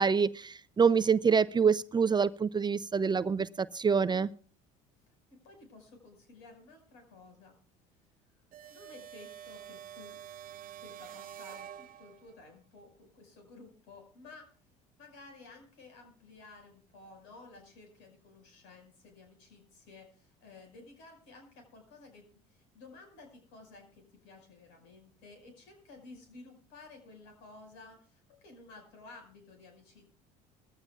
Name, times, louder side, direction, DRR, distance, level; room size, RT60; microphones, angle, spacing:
voice 1, 0.0-4.3, right 6 dB, 25° right, 0.5 m, -26 dB
voice 2, 5.4-7.5 7.9-8.1 8.7-10.2 10.8-14.5 15.0-30.1, left 3 dB, 75° left, 5.3 m, -54 dB
sound 1, 8.5-12.4, right 11 dB, 45° right, 1.0 m, -47 dB
21.0 x 15.0 x 2.4 m
hypercardioid pair, 75°, 19 cm